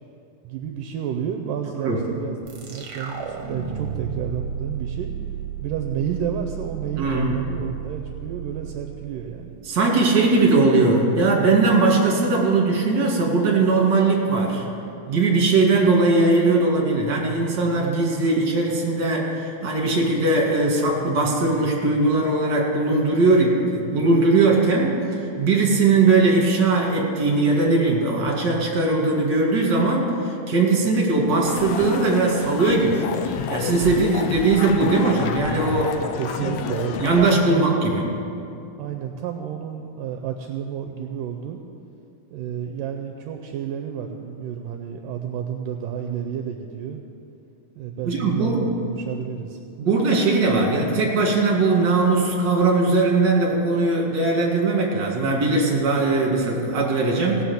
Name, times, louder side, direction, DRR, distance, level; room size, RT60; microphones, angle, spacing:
voice 1, 0.4-5.1 5.6-9.6 36.1-37.9 38.8-41.6 42.3-47.0 47.8-49.6, right 8 dB, 80° right, 4 dB, 2.1 m, -31 dB
sound 1, 2.4-9.7, right 8 dB, 60° right, 1.6 m, -33 dB
voice 2, 7.0-7.4 9.6-14.6 15.1-33.1 33.5-35.9 36.4-36.5 37.0-38.1 48.0-48.7 49.8-57.4, right 3 dB, 35° right, -2 dB, 2.3 m, -20 dB
sound 2, 31.4-37.3, left 6 dB, 90° left, 2.6 m, -30 dB
17.5 x 5.9 x 7.2 m, 2.6 s
omnidirectional pair, 4.2 m